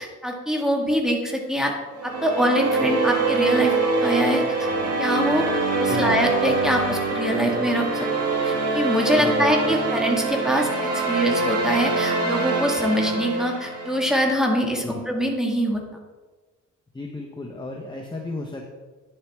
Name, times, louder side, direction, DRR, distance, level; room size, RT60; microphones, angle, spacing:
voice 1, 0.0-1.7 2.0-3.8 4.0-4.7 5.0-5.5 5.8-8.1 8.4-15.8, equal, ahead, 0 dB, 1.9 m, -24 dB
sound 1, 2.0-14.3, right 3 dB, 55° right, 1.9 m, -24 dB
voice 2, 9.2-9.8 14.8-15.0 16.9-18.6, left 3 dB, 15° left, 1 dB, 1.0 m, -34 dB
10.0 x 7.6 x 3.6 m, 1.3 s
cardioid pair, 90°, 30 cm